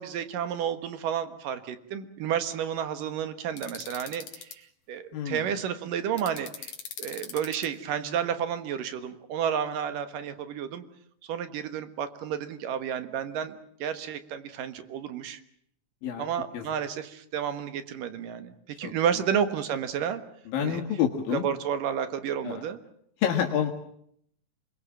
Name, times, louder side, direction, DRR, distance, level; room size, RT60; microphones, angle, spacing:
voice 1, 0.0-4.6 4.9-6.7 7.0-10.8 11.3-13.5 13.8-15.4 16.2-18.5 18.8-20.2 20.6-20.8 21.3-22.8, right 8 dB, 75° right, 11 dB, 3.1 m, -31 dB
sound 1, 3.6-4.5 6.2-7.7, left 7 dB, 55° left, 3.4 m, -40 dB
voice 2, 5.1-5.5 16.0-16.2 16.5-16.6 18.8-18.9 20.5-21.5 22.4-22.6 23.2-23.7, left 9 dB, 85° left, 2 dB, 3.6 m, -28 dB
27.5 x 21.5 x 7.4 m, 0.69 s
omnidirectional pair, 4.0 m